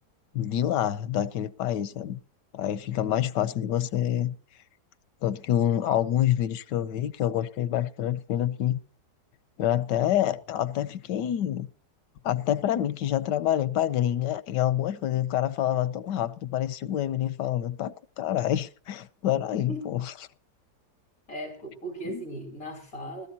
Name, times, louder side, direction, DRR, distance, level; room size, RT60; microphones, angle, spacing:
voice 1, 0.3-2.2 2.5-4.3 5.2-8.8 9.6-11.7 12.2-20.0, left 11 dB, 90° left, 1.4 m, -27 dB
voice 2, 21.3-23.3, right 1 dB, 50° left, 3.7 m, -37 dB
20.0 x 13.0 x 2.8 m
omnidirectional pair, 1.8 m